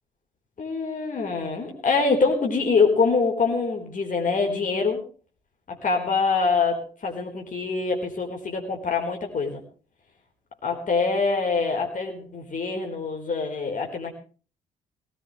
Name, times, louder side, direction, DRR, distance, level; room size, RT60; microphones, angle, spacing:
voice 1, 0.6-5.0 5.7-9.6 10.6-14.1, left 4 dB, 45° left, 2 dB, 4.2 m, -24 dB
19.5 x 18.5 x 3.2 m, 0.39 s
hypercardioid pair, 45°, 19 cm